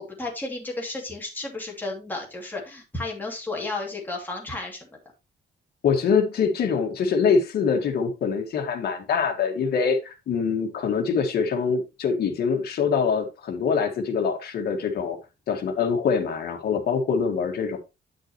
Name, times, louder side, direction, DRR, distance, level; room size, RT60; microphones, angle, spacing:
voice 1, 0.0-4.9, left 2 dB, 10° left, -1 dB, 2.5 m, -33 dB
voice 2, 5.8-15.2 15.5-17.8, left 6 dB, 55° left, 3 dB, 1.8 m, -24 dB
9.3 x 6.2 x 3.0 m, 0.26 s
cardioid pair, 165°, 19 cm